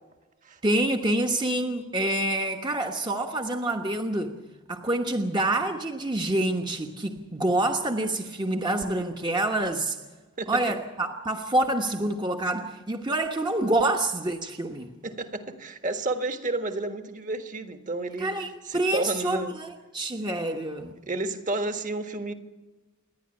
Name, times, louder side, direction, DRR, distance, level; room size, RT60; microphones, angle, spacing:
voice 1, 0.6-4.4 4.7-10.0 10.5-14.9 18.2-20.9, right 1 dB, 20° right, 3 dB, 1.1 m, -27 dB
voice 2, 15.0-18.3 18.6-19.5 21.0-22.3, right 2 dB, 35° right, 7 dB, 1.6 m, -31 dB
28.0 x 11.0 x 10.0 m, 1.2 s
head